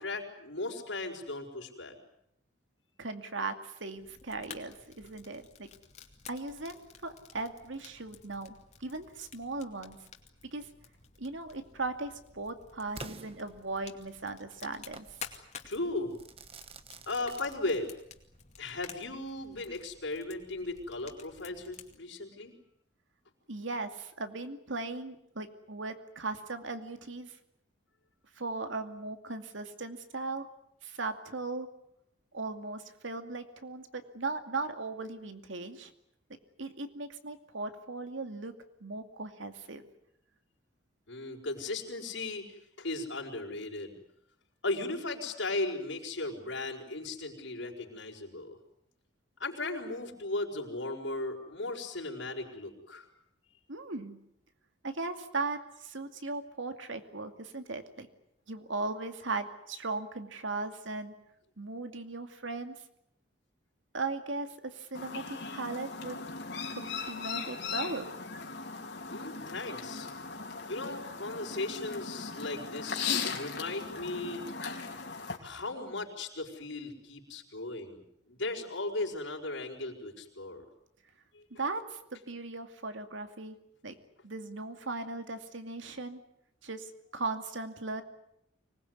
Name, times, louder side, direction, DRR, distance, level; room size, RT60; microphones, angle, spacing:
voice 1, 0.0-1.9 15.6-16.2 17.1-17.9 18.6-22.6 41.1-43.9 44.6-48.6 49.4-53.1 69.1-70.1 70.7-74.4 75.4-80.7 81.3-81.4, left 2 dB, 80° left, -1 dB, 5.3 m, -37 dB
voice 2, 3.0-5.7 6.3-10.0 10.5-10.7 11.2-15.1 23.5-27.4 28.4-30.5 30.8-31.7 32.3-35.9 36.6-38.5 38.8-39.8 53.7-54.2 54.8-58.1 58.5-61.2 61.6-62.7 63.9-66.2 66.7-68.0 81.6-83.6 83.8-84.0 84.2-86.2 86.6-88.0, right 3 dB, 85° right, 8 dB, 2.4 m, -38 dB
Fire, 4.0-21.9, left 7 dB, 35° left, 2.4 m, -52 dB
Crackle / Fireworks, 13.0-14.1 14.9-15.2 16.2-18.2, right 4 dB, 30° right, 1.2 m, -48 dB
Chirp tweet, 64.9-75.4, left 5 dB, 60° left, 3.3 m, -38 dB
25.0 x 20.0 x 9.7 m, 0.78 s
head